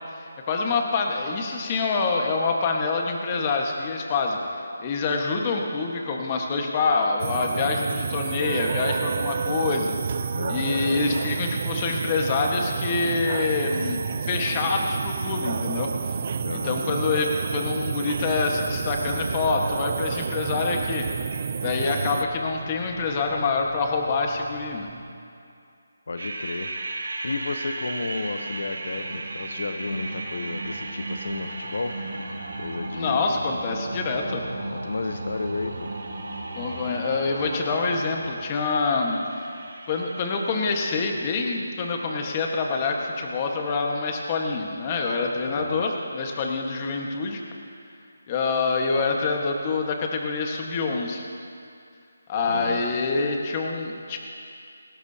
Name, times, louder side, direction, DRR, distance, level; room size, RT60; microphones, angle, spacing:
voice 1, 0.0-4.4 4.8-10.0 10.5-21.0 21.6-24.9 32.9-34.4 36.5-39.2 39.9-47.4 48.3-51.2 52.3-54.2, left 4 dB, 25° left, 2 dB, 1.4 m, -26 dB
sound 1, 7.2-22.2, right 6 dB, 40° right, 0.5 m, -30 dB
voice 2, 16.4-16.8 26.1-26.7 27.2-31.9 32.6-33.3 34.7-35.9 45.5-45.8 52.5-52.8, left 3 dB, 65° left, 7 dB, 0.8 m, -32 dB
sound 2, 18.1-25.0, right 1 dB, 15° right, 2.7 m, -45 dB
sound 3, 26.2-41.5, right 2 dB, 70° right, 2.0 m, -35 dB
19.0 x 17.5 x 2.8 m, 2.5 s
figure-of-eight pair, 165°, 0 cm